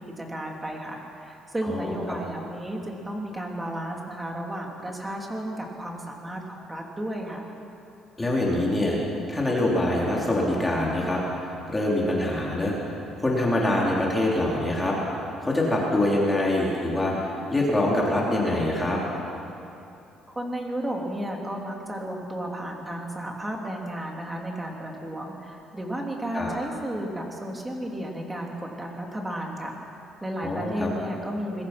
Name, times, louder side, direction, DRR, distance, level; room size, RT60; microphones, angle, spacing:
voice 1, 0.0-7.4 20.3-31.6, right 1 dB, 10° right, 0 dB, 2.9 m, -33 dB
voice 2, 8.2-9.0 9.3-11.4 11.7-12.7 13.2-15.0 15.4-19.0 26.3-26.5 30.4-30.9, left 1 dB, 10° left, -4 dB, 3.3 m, -24 dB
25.0 x 21.0 x 5.9 m, 2.8 s
cardioid pair, 155°, 0 cm